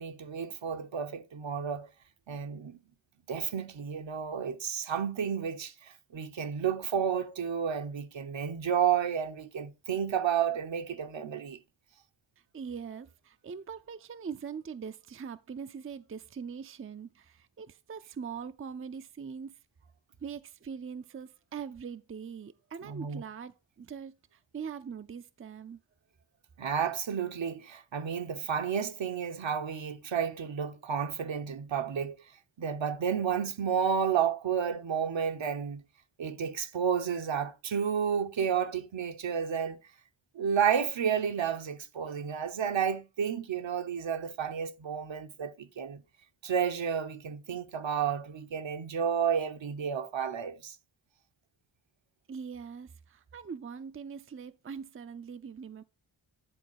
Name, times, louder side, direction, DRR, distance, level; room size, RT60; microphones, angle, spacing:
voice 1, 0.0-1.9 2.3-2.8 3.3-11.6 22.8-23.2 26.6-32.2 32.6-35.8 36.2-39.8 40.3-46.0 46.4-50.8, right 7 dB, 70° right, 1.0 m, -31 dB
voice 2, 12.5-19.6 20.2-25.8 52.3-55.8, right 6 dB, 30° right, 0.5 m, -42 dB
10.5 x 3.9 x 4.6 m
cardioid pair, 60°, 47 cm